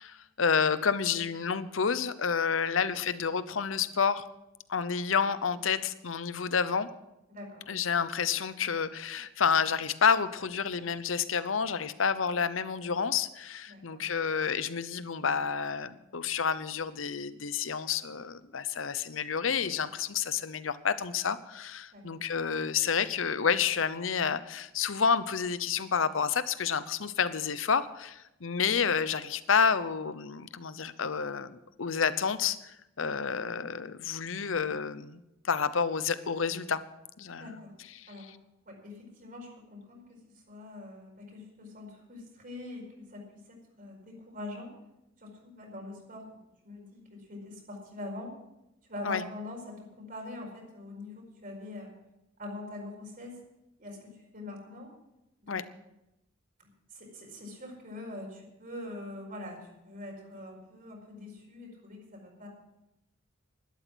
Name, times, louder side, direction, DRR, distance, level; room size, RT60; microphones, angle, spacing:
voice 1, 0.0-4.3 4.7-6.9 7.7-36.8 37.2-37.5 38.0-38.1 49.0-49.2 55.5-55.6, left 6 dB, 75° left, 15 dB, 0.8 m, -29 dB
voice 2, 7.3-7.8 13.7-14.0 21.9-22.2 37.4-37.7 38.1-38.3 38.6-44.7 45.2-48.3 48.9-51.9 52.4-53.4 53.8-54.9 55.4-55.6 56.9-62.5, left 2 dB, 45° right, 0 dB, 4.8 m, -44 dB
12.5 x 12.0 x 6.2 m, 0.90 s
head